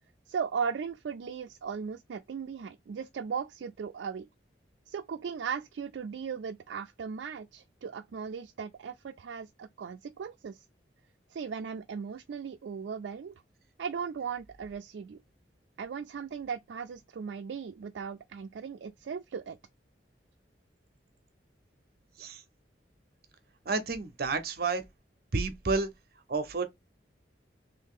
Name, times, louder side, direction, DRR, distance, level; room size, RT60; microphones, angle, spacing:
voice 1, 0.3-4.3 4.9-10.6 11.3-13.3 13.8-15.2 15.8-19.6, right 6 dB, 80° right, 0.3 m, -37 dB
voice 2, 23.7-24.8 25.3-25.9 26.3-26.6, right 3 dB, 55° right, 0.7 m, -30 dB
3.1 x 2.8 x 3.7 m
head